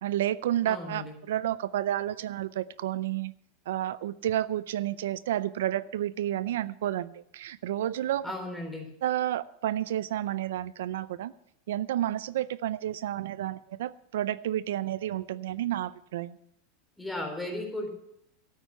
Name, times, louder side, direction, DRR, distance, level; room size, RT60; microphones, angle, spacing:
voice 1, 0.0-3.3 3.7-8.3 9.0-11.3 11.7-16.4, right 12 dB, 80° right, 17 dB, 0.4 m, -30 dB
voice 2, 0.7-1.2 8.2-8.9 17.0-17.9, left 1 dB, 5° left, 2 dB, 3.7 m, -35 dB
12.5 x 9.0 x 6.8 m, 0.75 s
supercardioid pair, 125°, 0 cm